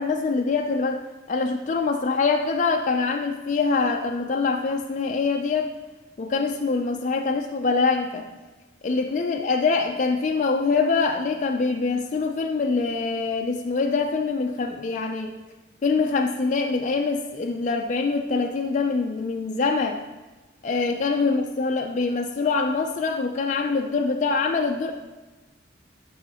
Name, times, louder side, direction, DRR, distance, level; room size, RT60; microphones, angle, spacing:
voice 1, 0.0-5.7 6.2-8.2 8.8-15.3 15.8-20.0 20.6-24.9, left 4 dB, 40° left, 3 dB, 0.3 m, -24 dB
6.4 x 5.5 x 2.9 m, 1.2 s
head